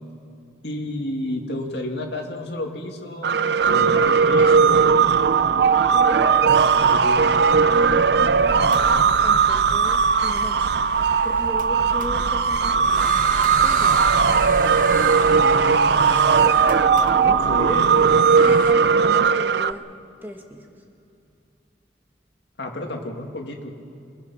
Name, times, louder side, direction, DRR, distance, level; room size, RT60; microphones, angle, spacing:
voice 1, 0.6-3.4 3.6-5.2 6.6-7.2 15.4-16.4 17.2-18.2 22.6-23.7, left 1 dB, 65° left, 2 dB, 2.5 m, -31 dB
sound 1, 3.2-19.7, right 5 dB, 60° right, 0.5 m, -18 dB
voice 2, 5.5-6.8 7.7-13.3 13.6-14.1 16.5-17.4 18.4-19.9 20.2-20.7, equal, 10° right, 2 dB, 1.7 m, -37 dB
sound 2, 8.7-18.7, right 4 dB, 45° right, 1.1 m, -32 dB
27.0 x 20.5 x 5.9 m, 2.6 s
head